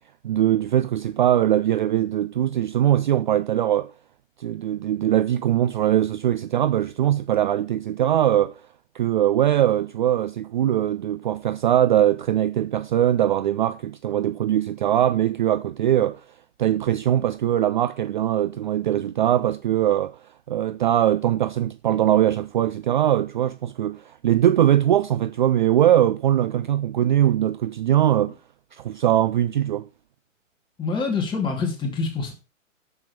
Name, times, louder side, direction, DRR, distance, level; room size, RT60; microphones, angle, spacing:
voice 1, 0.2-3.9 4.4-8.6 8.9-16.2 16.6-20.2 20.5-28.4 28.7-29.9, right 11 dB, 40° right, 0.4 m, -21 dB
voice 2, 30.8-32.3, left 4 dB, 10° left, 2.6 m, -26 dB
7.3 x 6.9 x 5.5 m
figure-of-eight pair, 115°, 39 cm